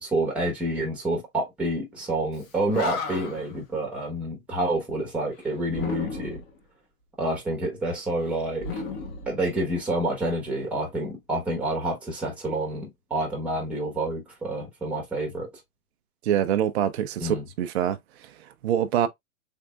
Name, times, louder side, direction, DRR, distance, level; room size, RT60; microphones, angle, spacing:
voice 1, 0.0-6.4 7.2-8.8 9.3-15.5 17.2-17.4, right 1 dB, 5° right, 1.0 m, -28 dB
Animal, 2.4-2.5 2.7-3.5 5.7-6.6 8.6-9.9, left 4 dB, 25° left, 0.9 m, -34 dB
voice 2, 16.2-19.1, right 10 dB, 50° right, 0.5 m, -25 dB
3.5 x 3.3 x 2.3 m
hypercardioid pair, 125°, 44 cm